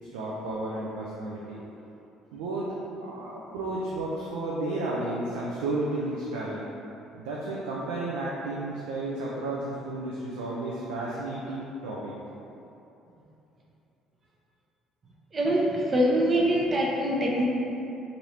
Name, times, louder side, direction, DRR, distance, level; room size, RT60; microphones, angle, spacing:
voice 1, 0.1-1.6 2.3-2.7 3.0-6.6 7.2-12.1, right 2 dB, 75° right, -5 dB, 0.3 m, -32 dB
voice 2, 15.3-17.4, equal, 35° right, -2 dB, 0.6 m, -24 dB
2.7 x 2.5 x 3.2 m, 2.9 s
hypercardioid pair, 55°, 0 cm